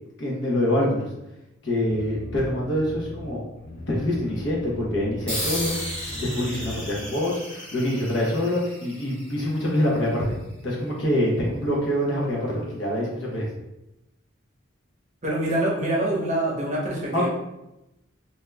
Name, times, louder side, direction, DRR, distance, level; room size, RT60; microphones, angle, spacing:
voice 1, 0.2-1.0 1.6-3.4 3.9-10.3 10.6-13.5 17.1-17.3, left 1 dB, 60° left, -4 dB, 0.9 m, -25 dB
sound 1, 1.9-6.9, left 1 dB, 40° left, 0.6 m, -39 dB
sound 2, 5.3-10.2, equal, 5° left, 1.0 m, -34 dB
voice 2, 15.2-17.3, right 1 dB, 35° right, -4 dB, 0.7 m, -25 dB
2.7 x 2.3 x 3.3 m, 0.93 s
head